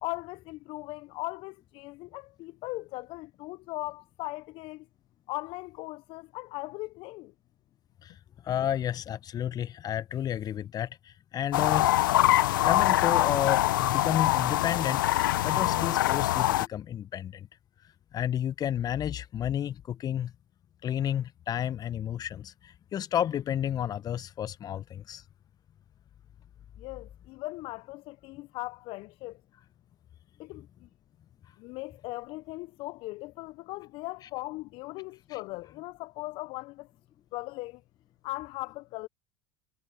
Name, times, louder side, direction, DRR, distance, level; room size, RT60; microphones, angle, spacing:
voice 1, 0.0-4.9 5.3-7.3 26.8-29.4 30.4-30.9 31.6-36.9 37.3-37.8 38.2-39.1, left 22 dB, 50° left, 0.9 m, -39 dB
voice 2, 8.4-12.0 12.6-15.1 15.4-17.5 18.1-20.3 20.8-25.2 35.3-35.4, left 10 dB, 35° left, 1.4 m, -31 dB
sound 1, 11.5-16.7, left 15 dB, 70° left, 1.3 m, -24 dB
hypercardioid pair, 80°, 11 cm